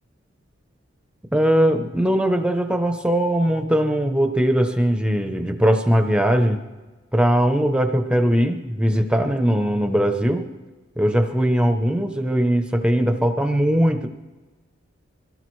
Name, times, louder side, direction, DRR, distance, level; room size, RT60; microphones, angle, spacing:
voice 1, 1.3-6.6 7.1-10.5 11.0-14.1, equal, 5° right, 6 dB, 0.7 m, -20 dB
23.0 x 17.0 x 3.2 m, 1.2 s
head